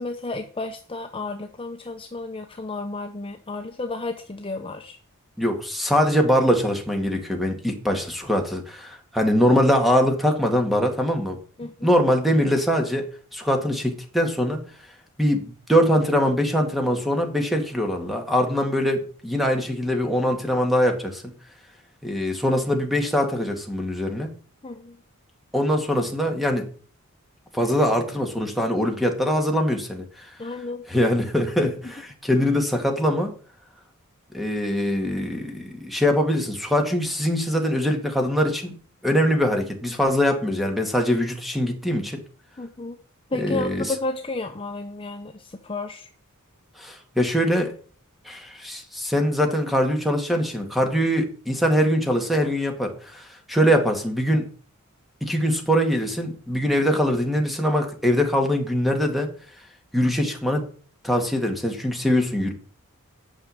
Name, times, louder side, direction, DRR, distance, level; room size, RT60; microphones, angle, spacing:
voice 1, 0.0-5.0 11.6-12.0 24.6-25.0 30.4-30.8 31.6-31.9 42.6-43.0 43.3-46.1, left 2 dB, 25° left, 5 dB, 0.9 m, -32 dB
voice 2, 5.4-11.4 11.8-14.6 15.2-21.3 22.0-24.3 25.5-26.7 27.5-30.3 30.9-31.7 32.2-33.3 34.3-38.7 39.0-42.2 43.4-43.8 46.8-47.7 48.3-54.5 55.2-59.3 59.9-60.6 61.0-62.5, equal, ahead, 4 dB, 2.1 m, -22 dB
9.3 x 6.4 x 8.5 m, 0.43 s
head